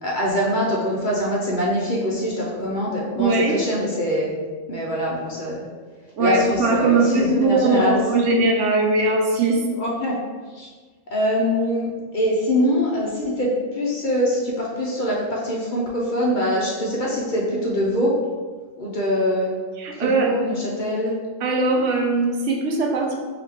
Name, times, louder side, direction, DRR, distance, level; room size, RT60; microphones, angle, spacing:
voice 1, 0.0-4.3 4.7-5.7 6.2-8.0 9.8-10.1 10.5-10.7 11.1-18.1 18.8-19.5 20.0-21.1, equal, 45° left, -4 dB, 0.7 m, -23 dB
voice 2, 3.2-3.6 6.1-9.7 19.8-20.3 21.4-23.2, right 3 dB, 70° right, 0 dB, 0.9 m, -20 dB
3.7 x 3.2 x 3.4 m, 1.4 s
omnidirectional pair, 1.3 m